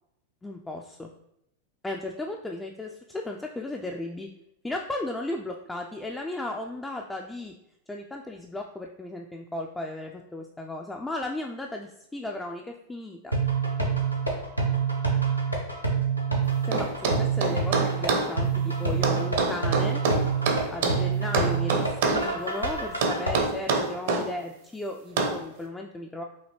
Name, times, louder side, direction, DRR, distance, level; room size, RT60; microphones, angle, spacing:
voice 1, 0.4-1.1 1.8-4.3 4.6-7.5 7.9-13.3 16.6-20.0 20.7-26.2, left 1 dB, 10° left, 1 dB, 0.3 m, -35 dB
sound 1, 13.3-23.3, right 5 dB, 90° left, 0.8 m, -27 dB
sound 2, 16.7-18.3 19.0-21.0 21.3-22.3 23.0-24.3 25.2-25.4, right 4 dB, 55° right, 0.6 m, -25 dB
5.6 x 2.7 x 3.0 m, 0.81 s
figure-of-eight pair, 90°, 0 cm